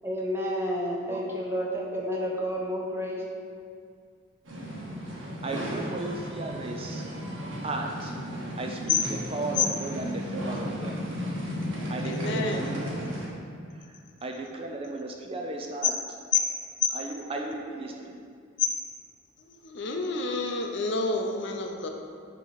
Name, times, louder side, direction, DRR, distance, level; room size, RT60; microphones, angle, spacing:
voice 1, 0.0-3.2, equal, 10° right, -3 dB, 0.8 m, -30 dB
sound 1, 4.4-13.3, equal, 75° right, 1.1 m, -34 dB
voice 2, 5.1-7.1 7.6-11.1 11.9-13.1 13.7-16.0 16.9-18.2, right 2 dB, 30° right, 2 dB, 0.4 m, -36 dB
voice 3, 12.0-12.7 16.8-16.9 18.6-18.7 19.4-21.9, left 4 dB, 60° left, 3 dB, 0.6 m, -29 dB
6.9 x 3.0 x 5.7 m, 2.2 s
head